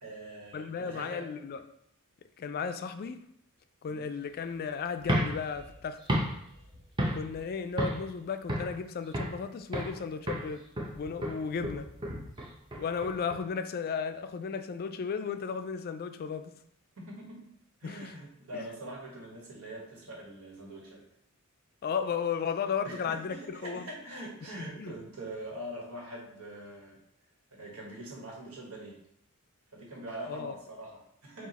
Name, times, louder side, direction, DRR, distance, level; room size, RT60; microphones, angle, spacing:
voice 1, 0.0-1.3 3.9-4.1 17.1-17.5 17.8-21.0 22.8-27.0 27.5-29.0 29.7-31.5, right 1 dB, 85° right, 1.5 m, -43 dB
voice 2, 0.5-1.6 2.4-3.3 3.8-6.0 7.1-10.7 10.9-11.9 12.7-16.6 17.8-18.2 18.5-18.7 21.8-23.9 24.8-25.0 30.3-30.6, left 6 dB, 45° left, 0.3 m, -34 dB
sound 1, 5.0-7.4 7.8-8.1 8.5-9.4 9.7-10.0 10.3-13.4, equal, 20° right, 0.8 m, -33 dB
4.6 x 2.4 x 4.1 m
head